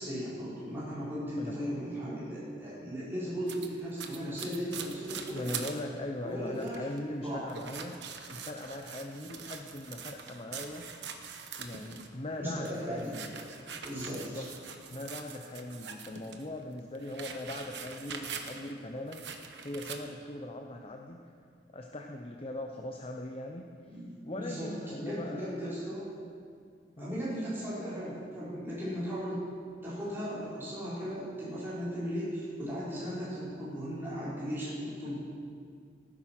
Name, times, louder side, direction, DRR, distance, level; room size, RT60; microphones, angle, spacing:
voice 1, 0.0-5.6 6.2-6.8 7.2-7.5 12.4-13.2 13.8-14.4 23.9-26.1 27.0-29.4 29.8-35.2, equal, 10° right, -11 dB, 4.5 m, -37 dB
voice 2, 1.4-1.7 5.3-8.0 8.3-10.9 11.6-13.3 14.1-14.5 14.9-19.2 19.6-21.2 21.7-24.0 24.3-25.5 27.0-27.2, left 1 dB, 30° left, 2 dB, 0.7 m, -40 dB
sound 1, 3.5-5.8 6.2-6.3 6.5-7.0 7.5-12.1 12.5-16.4 16.8-18.8 19.1-20.0, right 6 dB, 65° right, 1.1 m, -43 dB
16.5 x 10.0 x 6.0 m, 2.2 s
head